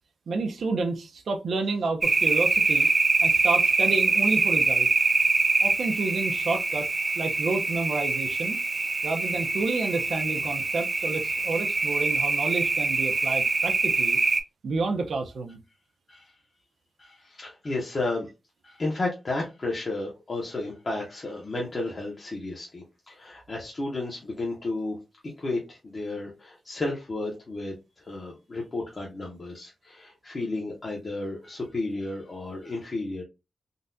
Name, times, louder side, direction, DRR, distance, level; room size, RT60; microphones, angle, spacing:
voice 1, 0.3-2.9 3.2-4.9 5.6-6.9 7.2-8.6 9.0-14.2 14.6-15.6, right 3 dB, 80° right, 0.6 m, -30 dB
sound 1, 2.0-14.4, right 3 dB, 35° right, 0.4 m, -24 dB
voice 2, 17.0-18.3 18.6-25.0 25.2-33.2, left 2 dB, 35° left, 0.7 m, -33 dB
3.8 x 2.2 x 2.6 m
wide cardioid pair, 175°, 0 cm